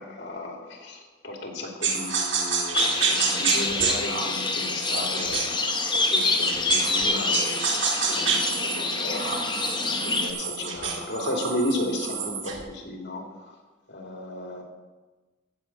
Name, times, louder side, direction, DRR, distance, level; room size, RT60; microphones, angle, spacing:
voice 1, 0.0-5.4 6.1-7.6 8.0-9.3 9.8-13.2 13.9-14.6, left 1 dB, 70° left, 1 dB, 2.5 m, -33 dB
sound 1, 1.8-7.0 7.3-12.6, right 5 dB, 80° right, 2.1 m, -29 dB
sound 2, 2.7-10.3, left 3 dB, 25° left, 1.0 m, -27 dB
14.5 x 5.0 x 7.5 m, 1.2 s
head